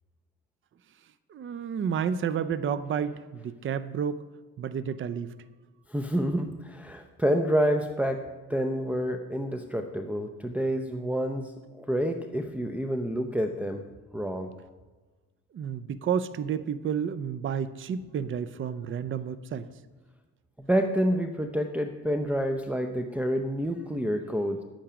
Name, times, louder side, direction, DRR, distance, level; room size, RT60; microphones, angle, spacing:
voice 1, 1.3-4.2 4.6-5.3 15.5-19.7, right 7 dB, 40° right, 15 dB, 0.6 m, -31 dB
voice 2, 5.9-8.2 8.5-13.8 14.1-14.5 20.6-24.6, equal, 5° right, 4 dB, 0.7 m, -28 dB
10.0 x 8.8 x 5.0 m, 1.3 s
cardioid pair, 90°, 30 cm